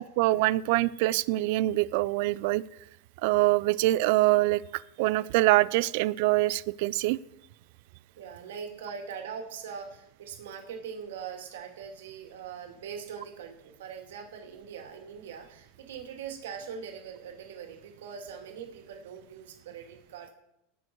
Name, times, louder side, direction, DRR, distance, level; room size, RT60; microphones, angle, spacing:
voice 1, 0.0-2.6 3.2-7.2, right 18 dB, 55° right, 20 dB, 0.4 m, -24 dB
voice 2, 8.2-20.3, right 7 dB, 85° right, 3 dB, 2.6 m, -42 dB
18.0 x 7.0 x 4.7 m, 0.89 s
supercardioid pair, 160°, 0 cm